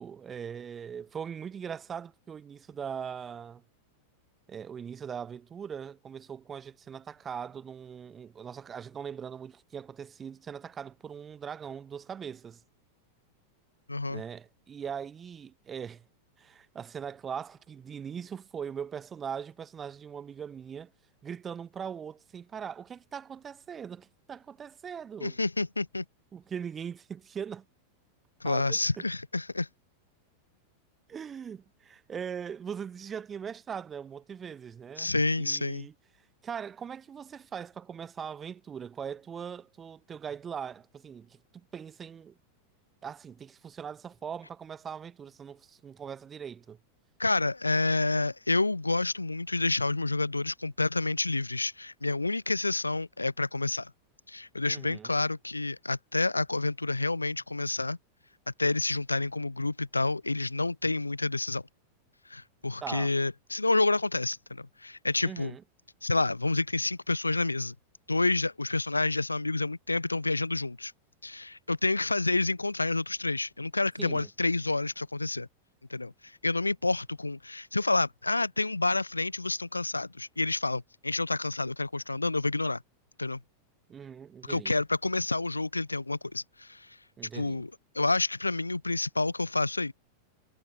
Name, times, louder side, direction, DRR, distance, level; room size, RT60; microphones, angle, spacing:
voice 1, 0.0-3.6 4.5-12.6 14.1-16.0 16.4-20.9 21.2-25.4 26.3-27.6 28.4-29.1 31.1-35.9 36.4-42.4 43.0-46.8 54.7-55.1 62.8-63.1 65.2-65.6 74.0-74.3 83.9-84.7 87.2-87.6, right 7 dB, 20° right, 1.2 m, -40 dB
voice 2, 13.9-14.2 25.2-26.0 28.4-29.7 35.0-35.9 47.2-53.9 54.3-58.0 58.6-61.6 62.3-65.6 66.0-67.7 68.1-70.9 71.2-75.5 75.9-82.8 83.2-83.4 84.4-87.0 87.3-89.9, left 2 dB, 80° left, 0.8 m, -29 dB
figure-of-eight pair, 90°, 0 cm